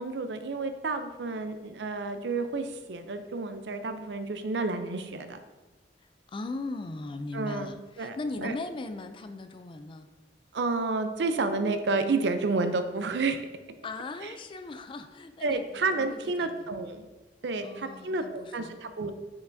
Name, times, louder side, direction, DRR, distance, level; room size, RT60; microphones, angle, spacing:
voice 1, 0.0-5.4 7.3-8.2 8.4-8.5 10.5-13.4 14.2-14.3 15.4-17.1 17.4-19.1, right 3 dB, 70° right, 9 dB, 0.5 m, -30 dB
voice 2, 6.3-10.1 13.8-15.6 15.9-16.6 17.6-18.8, left 3 dB, 30° left, 9 dB, 0.4 m, -38 dB
6.4 x 5.8 x 2.6 m, 1.2 s
head